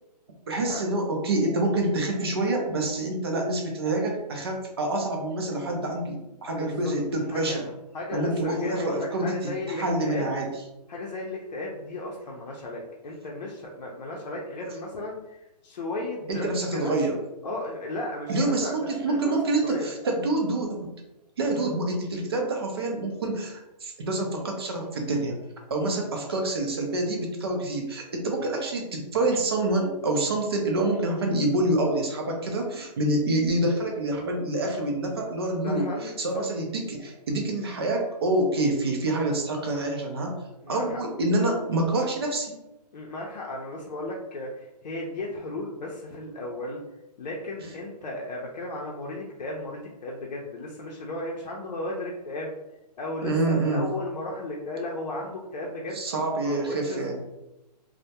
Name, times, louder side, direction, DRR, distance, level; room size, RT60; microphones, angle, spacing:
voice 1, 0.5-7.7 8.1-10.5 16.3-17.2 18.3-20.9 21.4-25.4 25.7-40.3 40.7-42.6 53.2-53.9 55.9-57.2, right 2 dB, 35° right, 2 dB, 0.4 m, -27 dB
voice 2, 6.6-6.9 7.3-7.6 7.9-10.3 10.9-15.2 15.6-16.9 17.4-19.4 19.6-19.9 21.5-21.7 35.6-36.4 40.6-41.0 42.9-46.8 47.2-52.5 53.0-56.0 56.4-57.2, left 2 dB, 85° left, -2 dB, 0.5 m, -35 dB
2.1 x 2.1 x 2.7 m, 0.95 s
hypercardioid pair, 165°, 21 cm